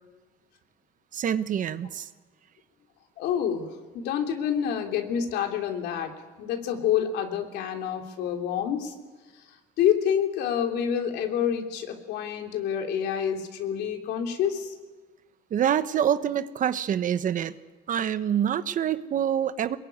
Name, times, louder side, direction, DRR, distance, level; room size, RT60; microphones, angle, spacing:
voice 1, 1.1-2.1 15.5-17.5 17.9-19.8, right 9 dB, 50° right, 13 dB, 1.1 m, -26 dB
voice 2, 3.2-3.7 3.9-6.1 6.4-8.9 9.8-14.7, left 8 dB, 85° left, 4 dB, 3.3 m, -27 dB
23.0 x 21.5 x 9.5 m, 1.3 s
cardioid pair, 110°, 17 cm